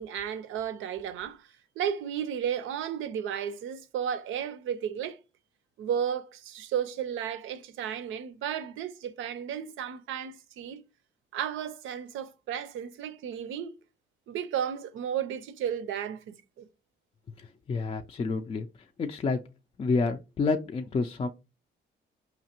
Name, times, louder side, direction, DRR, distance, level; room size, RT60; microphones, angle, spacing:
voice 1, 0.0-1.5 1.8-5.2 5.8-10.8 11.3-13.7 14.3-16.7, right 9 dB, 80° right, 0.5 m, -33 dB
voice 2, 17.4-18.7 19.0-19.4 19.8-21.3, left 4 dB, 30° left, 0.3 m, -29 dB
5.0 x 2.8 x 2.8 m
cardioid pair, 90°, 20 cm